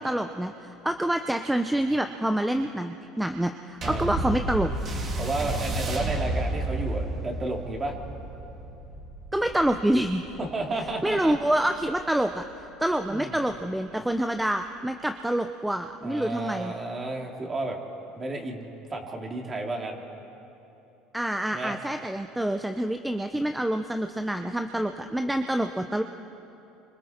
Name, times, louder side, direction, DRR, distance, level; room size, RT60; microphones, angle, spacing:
voice 1, 0.0-4.7 9.3-10.3 10.8-12.4 12.8-16.7 21.1-26.0, right 1 dB, 5° right, 7 dB, 0.7 m, -27 dB
voice 2, 3.8-4.1 5.2-7.9 10.4-11.3 13.1-13.3 16.0-17.8 18.1-20.0 21.5-21.8, right 2 dB, 25° right, 1 dB, 3.1 m, -32 dB
sound 1, 3.8-12.6 13.3-13.4, right 2 dB, 40° right, 3.3 m, -32 dB
27.5 x 26.0 x 4.5 m, 2.9 s
supercardioid pair, 110°, 0 cm